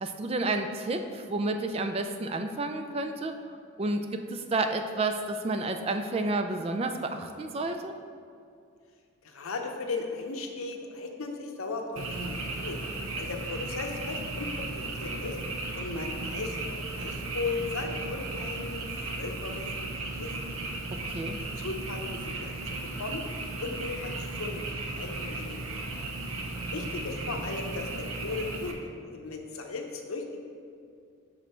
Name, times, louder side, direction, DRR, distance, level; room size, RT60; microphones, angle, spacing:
voice 1, 0.0-3.3 3.8-4.1 4.3-7.9 21.1-21.4, right 2 dB, 30° right, 6 dB, 0.3 m, -30 dB
voice 2, 9.2-12.8 13.2-15.4 15.7-19.7 20.1-20.6 21.4-23.3 23.6-24.7 24.9-25.6 26.7-28.7 29.1-30.3, left 3 dB, 85° left, 3 dB, 0.8 m, -37 dB
Frog, 12.0-28.7, right 2 dB, 85° right, 0.8 m, -35 dB
6.1 x 5.1 x 4.3 m, 2.4 s
head